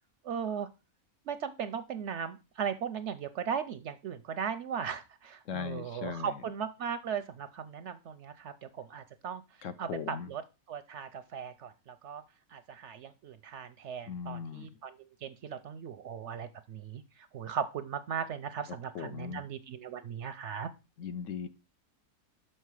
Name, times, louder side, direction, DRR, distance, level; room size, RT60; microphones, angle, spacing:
voice 1, 0.2-0.7 1.3-9.4 9.8-10.4 10.7-12.2 12.5-20.7, right 7 dB, 65° right, 12 dB, 0.7 m, -38 dB
voice 2, 5.5-6.3 9.6-10.3 14.1-14.7 18.7-19.4 21.0-21.5, left 7 dB, 65° left, 11 dB, 0.9 m, -39 dB
6.2 x 5.6 x 4.7 m, 0.28 s
omnidirectional pair, 1.5 m